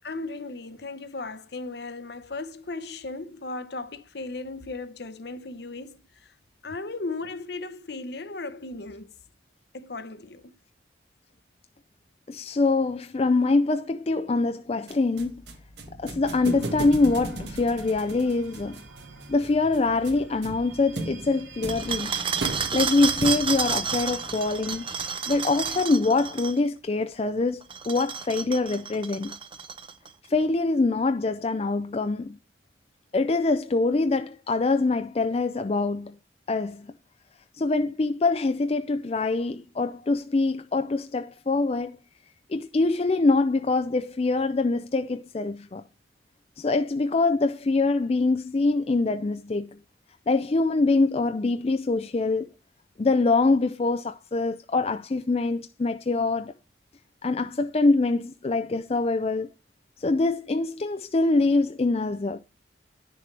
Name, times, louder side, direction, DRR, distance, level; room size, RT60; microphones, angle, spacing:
voice 1, 0.0-6.3 6.6-9.1 9.7-10.5, left 3 dB, 60° left, 0.8 m, -36 dB
voice 2, 12.3-15.4 16.0-18.8 19.3-22.1 22.7-24.9 25.3-29.4 30.3-32.4 33.1-36.1 36.5-36.9 37.6-42.0 42.5-45.8 46.6-49.8 50.3-52.5 53.0-56.5 57.2-59.5 60.0-62.4, left 3 dB, 30° left, 0.4 m, -24 dB
sound 1, 14.9-23.8, right 2 dB, 65° right, 1.7 m, -37 dB
sound 2, 16.2-25.8, right 3 dB, 90° right, 2.2 m, -48 dB
sound 3, 21.7-26.6 27.6-30.1, right 6 dB, 25° right, 0.7 m, -30 dB
10.5 x 6.7 x 3.3 m
head